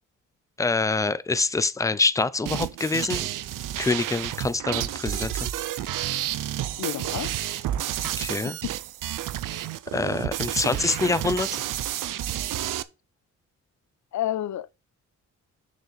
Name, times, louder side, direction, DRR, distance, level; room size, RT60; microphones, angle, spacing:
voice 1, 0.6-3.3 3.8-5.5 8.2-8.6 9.9-11.5, left 3 dB, 10° left, 0.5 m, -25 dB
sound 1, 2.5-12.8, right 12 dB, 85° right, 0.7 m, -30 dB
sound 2, 3.2-3.9 4.8-6.5 7.2-8.3, right 5 dB, 60° right, 3.7 m, -48 dB
voice 2, 6.8-7.3 8.4-8.7 14.1-14.7, left 12 dB, 65° left, 0.6 m, -30 dB
6.7 x 6.6 x 4.1 m
cardioid pair, 100°, 31 cm